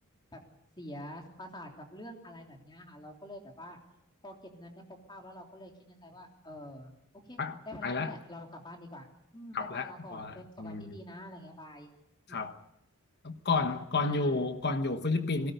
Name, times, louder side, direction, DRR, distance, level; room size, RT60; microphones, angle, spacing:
voice 1, 0.8-3.8 4.2-6.9 7.2-9.1 9.3-11.9 12.3-12.4 14.0-14.5, left 1 dB, 20° left, 3.2 m, -47 dB
voice 2, 7.4-8.2 9.5-10.9 12.3-12.6 13.2-15.5, left 3 dB, 50° left, 1.2 m, -31 dB
22.0 x 18.0 x 8.1 m
head